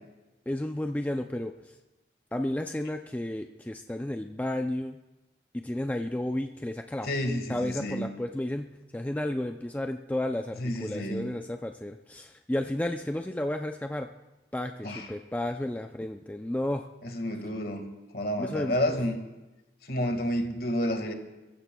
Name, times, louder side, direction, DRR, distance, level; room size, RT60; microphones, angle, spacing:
voice 1, 0.5-1.7 2.3-5.0 5.5-7.1 7.5-14.1 14.5-16.9 18.4-19.0, left 1 dB, 10° left, 5 dB, 0.4 m, -32 dB
voice 2, 7.0-8.1 10.6-11.3 14.8-15.1 17.0-19.2 19.9-21.1, left 1 dB, 55° left, 5 dB, 1.7 m, -30 dB
27.5 x 15.0 x 2.3 m, 1.0 s
head